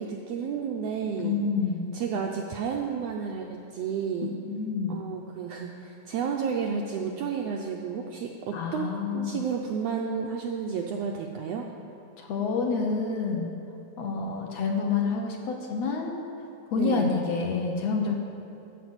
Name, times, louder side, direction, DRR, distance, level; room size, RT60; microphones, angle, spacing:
voice 1, 0.0-1.4 1.9-4.3 4.9-8.9 9.1-11.7 16.7-17.2, right 6 dB, 80° right, 1 dB, 1.5 m, -31 dB
voice 2, 1.2-1.9 4.2-5.0 8.5-9.4 12.2-13.5 14.0-16.2 16.7-18.2, left 4 dB, 65° left, 1 dB, 1.9 m, -28 dB
13.0 x 5.0 x 7.9 m, 2.8 s
omnidirectional pair, 3.5 m